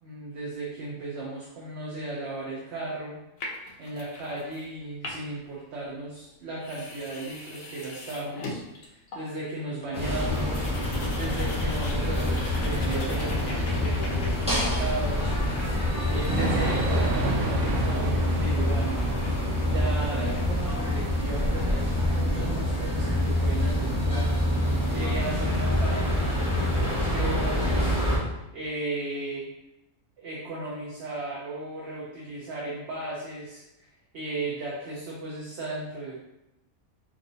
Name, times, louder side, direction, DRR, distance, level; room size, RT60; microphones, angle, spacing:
voice 1, 0.0-3.2 3.8-10.7 11.1-15.7 16.1-18.9 19.6-24.3 24.9-27.9 28.5-29.5 30.2-36.2, right 2 dB, 55° right, -4 dB, 1.0 m, -35 dB
sound 1, 3.4-4.6 4.9-5.5 6.2-6.3 6.5-9.5 9.8-9.9 10.1-20.5, left 2 dB, 75° left, 1.1 m, -42 dB
sound 2, 9.9-28.2, left 1 dB, 5° right, 1.2 m, -26 dB
Thunder / Rain, 10.2-23.7, right 2 dB, 80° right, 1.1 m, -34 dB
4.4 x 3.7 x 2.6 m, 0.90 s
omnidirectional pair, 1.5 m